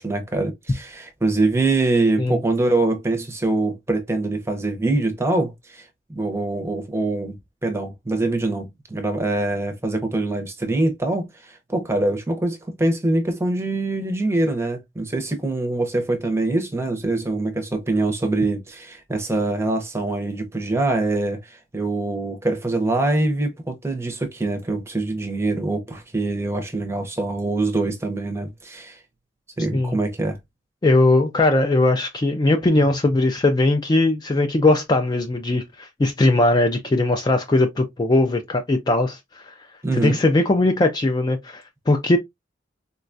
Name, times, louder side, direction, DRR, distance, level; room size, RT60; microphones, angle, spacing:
voice 1, 0.0-29.0 29.6-30.4 39.8-40.2, right 2 dB, 15° right, 0.6 m, -24 dB
voice 2, 30.8-39.5 39.9-42.2, left 2 dB, 20° left, 0.3 m, -19 dB
3.9 x 2.2 x 2.5 m
head